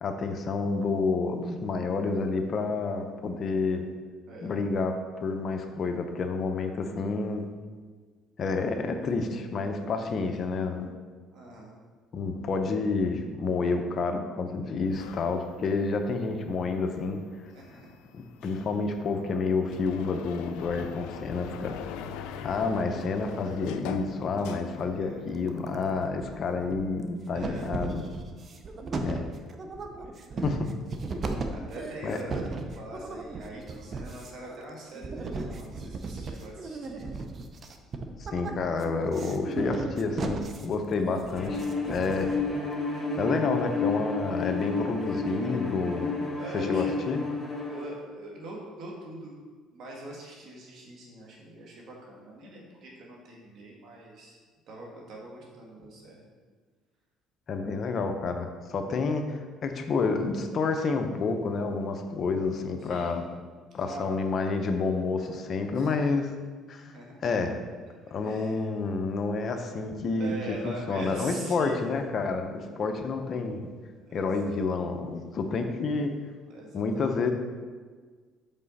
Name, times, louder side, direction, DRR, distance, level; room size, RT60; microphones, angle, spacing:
voice 1, 0.0-3.8 4.4-7.5 8.4-10.9 12.1-17.2 18.1-21.8 22.4-28.0 28.9-29.2 30.4-30.7 32.0-32.2 38.2-42.3 43.2-46.2 46.5-47.2 57.5-63.2 63.7-66.3 66.7-66.9 67.2-67.6 68.1-73.7 74.1-76.1 76.7-77.3, left 4 dB, 45° left, 6 dB, 0.7 m, -29 dB
voice 2, 11.3-11.7 17.5-17.9 24.8-25.2 27.3-27.6 28.7-28.9 30.0-30.4 31.5-37.0 46.4-47.1 47.6-49.3 49.7-54.4 54.7-56.3 57.6-57.8 62.8-63.1 63.8-64.1 65.8-65.9 66.8-67.1 68.2-68.7 70.2-71.9 74.1-74.6 76.5-77.2, right 1 dB, 65° right, -2 dB, 1.8 m, -43 dB
sound 1, 14.8-25.4 25.7-27.0, left 8 dB, 85° left, 0.4 m, -42 dB
sound 2, 25.3-25.9 26.2-27.0 27.4-42.5, right 3 dB, 40° right, 0.6 m, -36 dB
Bowed string instrument, 41.3-47.9, left 3 dB, 5° left, 1.8 m, -31 dB
5.6 x 5.5 x 4.1 m, 1.5 s
cardioid pair, 100°, 0 cm